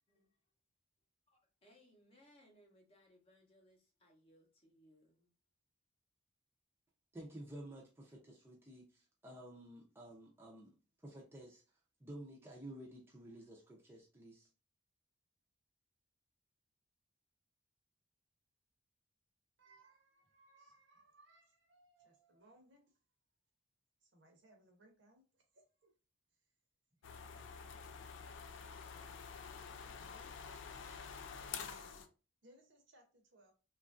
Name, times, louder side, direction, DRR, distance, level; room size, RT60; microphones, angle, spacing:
voice 1, 1.6-5.3, equal, 30° left, 0.7 m, -67 dB
voice 2, 7.1-10.7 11.0-11.6 12.0-14.5, right 1 dB, 10° right, 0.5 m, -52 dB
voice 3, 19.6-22.8 24.0-25.9 27.3-28.4 29.8-30.4 31.5-32.1 32.4-33.5, right 1 dB, 60° right, 0.8 m, -66 dB
sound 1, 27.0-32.1, left 6 dB, 65° left, 0.3 m, -48 dB
3.0 x 2.4 x 2.4 m
head